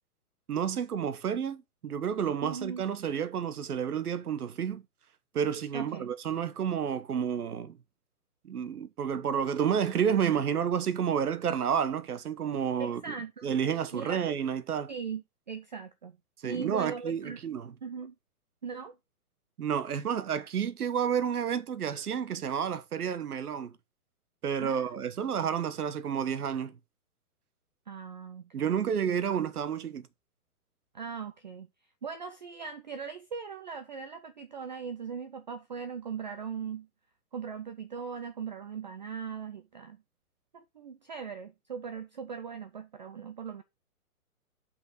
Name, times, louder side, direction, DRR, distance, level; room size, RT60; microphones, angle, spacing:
voice 1, 0.5-4.8 5.3-7.8 8.4-13.1 13.4-14.9 16.4-17.7 19.6-23.7 24.4-26.8 28.5-30.1, right 8 dB, 80° right, 1.2 m, -30 dB
voice 2, 2.4-2.8 5.7-6.1 12.8-13.5 13.9-14.2 14.9-16.2 16.4-17.4 17.8-18.1 18.6-19.0 24.6-24.9 27.9-28.8 30.9-31.7 32.0-36.9 37.3-40.0 40.5-43.6, right 6 dB, 30° right, 0.5 m, -39 dB
5.6 x 5.6 x 5.6 m
hypercardioid pair, 160°, 45 cm